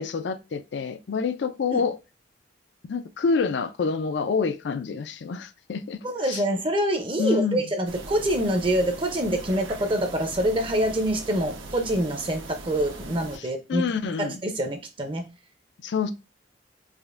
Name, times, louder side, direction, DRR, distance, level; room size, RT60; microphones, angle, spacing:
voice 1, 0.0-2.0 2.8-6.4 7.2-7.6 13.4-13.5 13.7-14.4 15.8-16.1, left 5 dB, 65° left, 0.4 m, -27 dB
voice 2, 6.0-13.9 14.2-15.3, right 1 dB, 25° right, 0.5 m, -26 dB
sound 1, 7.9-13.4, right 2 dB, 90° right, 0.9 m, -40 dB
5.0 x 2.5 x 2.4 m
head